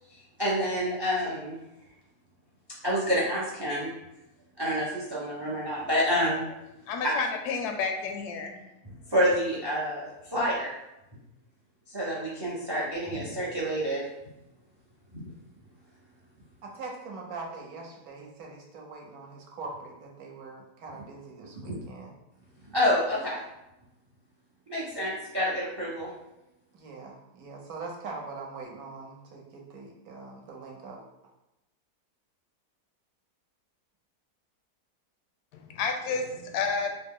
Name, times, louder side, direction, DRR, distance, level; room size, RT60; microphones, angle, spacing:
voice 1, 0.4-1.5 2.8-3.9 4.6-6.5 9.1-10.7 11.9-14.0 15.1-15.2 21.6-21.8 22.7-23.4 24.7-26.1, equal, 40° right, -5 dB, 0.3 m, -28 dB
voice 2, 6.9-8.6 35.5-36.9, left 5 dB, 85° left, 4 dB, 1.1 m, -30 dB
voice 3, 16.6-22.1 26.7-31.0, right 3 dB, 70° right, -1 dB, 1.2 m, -42 dB
3.9 x 2.0 x 3.6 m, 0.91 s
omnidirectional pair, 1.7 m